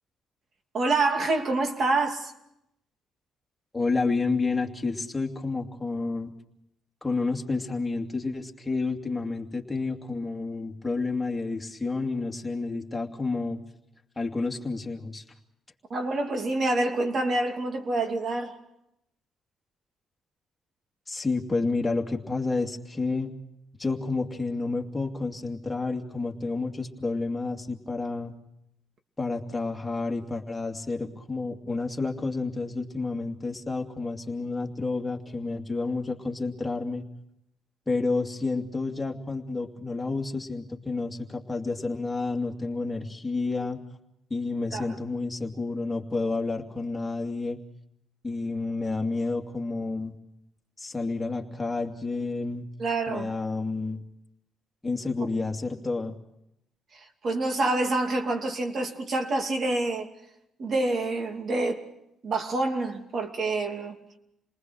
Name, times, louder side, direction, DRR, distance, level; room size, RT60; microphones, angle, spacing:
voice 1, 0.7-2.3 15.9-18.6 44.7-44.9 52.8-53.3 56.9-60.1 60.6-61.8 62.2-64.0, right 2 dB, 50° right, 2.7 m, -27 dB
voice 2, 3.7-6.3 7.0-13.6 14.2-15.2 21.1-23.3 23.8-28.3 29.2-37.0 37.9-43.8 44.3-47.6 48.2-50.1 50.8-52.7 53.1-54.0 54.8-56.1, left 3 dB, 15° left, 2.5 m, -30 dB
28.5 x 20.0 x 6.4 m
cardioid pair, 90°, 0 cm